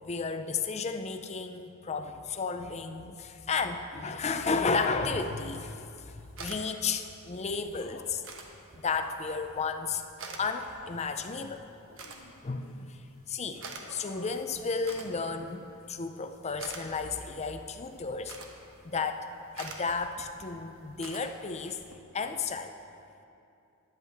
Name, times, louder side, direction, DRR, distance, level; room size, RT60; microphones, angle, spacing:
voice 1, 0.0-8.2 8.8-10.0 10.4-11.6 12.4-15.6 15.9-18.4 18.8-19.3 19.5-21.8 22.1-22.7, left 4 dB, 30° left, 8 dB, 0.5 m, -33 dB
sound 1, 5.0-21.9, right 3 dB, 60° right, 1.1 m, -49 dB
sound 2, 7.7-8.2 8.9-11.2 11.9-13.0 13.6-14.4 14.7-14.9, left 3 dB, 70° left, 0.8 m, -51 dB
13.5 x 10.5 x 3.5 m, 2.7 s
head